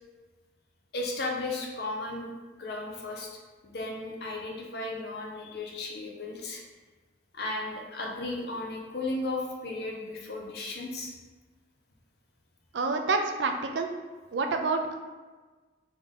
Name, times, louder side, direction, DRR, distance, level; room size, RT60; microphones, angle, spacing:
voice 1, 0.9-2.3 2.6-3.3 3.6-6.6 7.3-11.1, left 2 dB, 60° left, -1 dB, 0.8 m, -35 dB
voice 2, 12.7-13.9 14.3-14.9, right 3 dB, 85° right, 5 dB, 0.5 m, -28 dB
3.9 x 3.4 x 3.6 m, 1.3 s
head